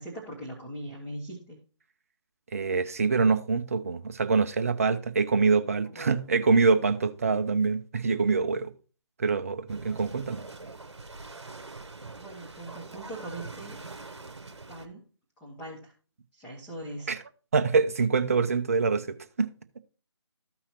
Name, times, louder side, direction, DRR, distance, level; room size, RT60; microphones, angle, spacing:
voice 1, 0.0-1.6 5.8-6.2 10.6-10.7 12.2-13.8 14.7-15.0 15.4-15.9 16.3-17.1, right 1 dB, 5° left, 1.3 m, -41 dB
voice 2, 2.5-8.7 9.2-10.4 17.1-17.2 17.5-19.5, right 4 dB, 30° right, 0.6 m, -25 dB
sound 1, 9.7-14.9, right 3 dB, 65° right, 1.1 m, -43 dB
14.0 x 5.6 x 2.8 m
figure-of-eight pair, 150°, 15 cm